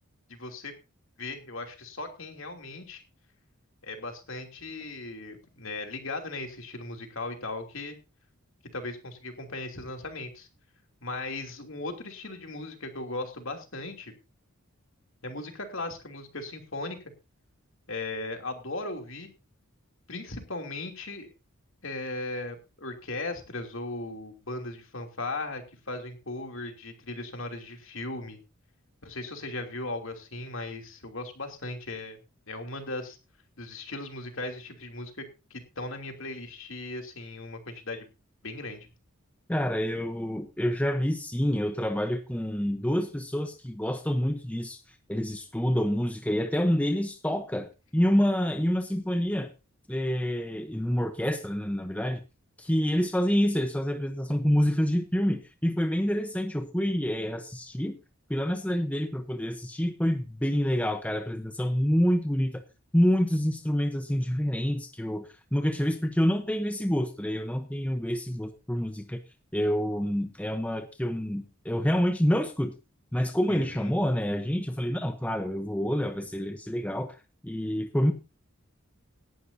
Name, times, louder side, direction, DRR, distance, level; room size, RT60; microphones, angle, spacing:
voice 1, 0.3-0.7 1.2-3.0 3.8-8.0 8.7-10.5 11.0-14.1 15.2-17.0 17.9-19.3 20.1-21.3 21.8-28.4 29.0-32.2 32.5-33.2 33.6-35.2 35.5-38.1 38.4-38.9 73.5-73.9, left 2 dB, 60° left, 4 dB, 2.9 m, -37 dB
voice 2, 39.5-44.8 45.1-47.7 47.9-49.5 49.9-52.2 52.6-58.0 58.3-62.6 62.9-69.2 69.5-72.7 73.1-77.2 77.4-78.1, equal, 5° left, 6 dB, 0.8 m, -27 dB
18.0 x 11.5 x 2.7 m, 0.28 s
head